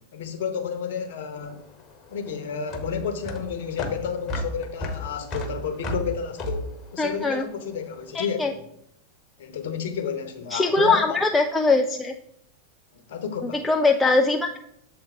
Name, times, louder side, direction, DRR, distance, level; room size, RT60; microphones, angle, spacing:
voice 1, 0.0-1.6 2.1-8.6 9.4-11.2 12.9-13.6, left 6 dB, 55° left, 0.9 m, -31 dB
sound 1, 1.4-7.9, equal, 30° left, 1.0 m, -34 dB
voice 2, 7.0-7.4 8.1-8.5 10.5-12.1 13.4-14.6, left 3 dB, 10° left, 0.4 m, -21 dB
7.0 x 3.7 x 4.6 m
figure-of-eight pair, 90°, 0 cm